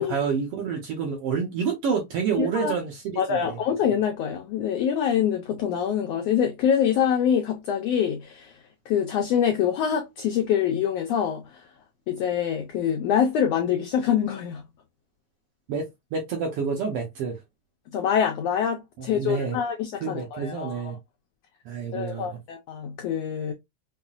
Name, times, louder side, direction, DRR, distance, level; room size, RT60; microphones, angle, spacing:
voice 1, 0.0-3.6 15.7-15.8 16.1-17.3 19.0-19.6 20.0-21.0 21.6-22.3, right 6 dB, 65° right, 1.5 m, -28 dB
voice 2, 2.4-2.7 3.2-8.6 8.9-11.6 12.1-14.6 17.9-20.8 21.9-23.5, left 8 dB, 85° left, 1.4 m, -25 dB
5.6 x 2.1 x 2.4 m
omnidirectional pair, 3.5 m